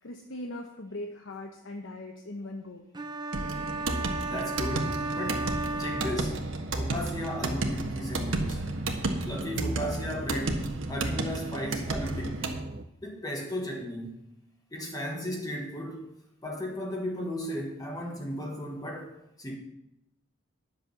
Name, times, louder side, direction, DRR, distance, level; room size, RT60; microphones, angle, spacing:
voice 1, 0.0-2.8, left 1 dB, 75° left, 1.0 m, -40 dB
sound 1, 2.9-6.8, right 2 dB, 20° right, 0.8 m, -34 dB
sound 2, 3.3-12.6, right 2 dB, 80° right, 1.4 m, -33 dB
voice 2, 4.3-8.8 9.2-12.6 13.0-14.2 14.7-16.0 16.4-19.6, equal, 20° left, 1.4 m, -35 dB
sound 3, 5.2-12.8, right 2 dB, 45° right, 0.5 m, -40 dB
10.5 x 6.7 x 7.0 m
head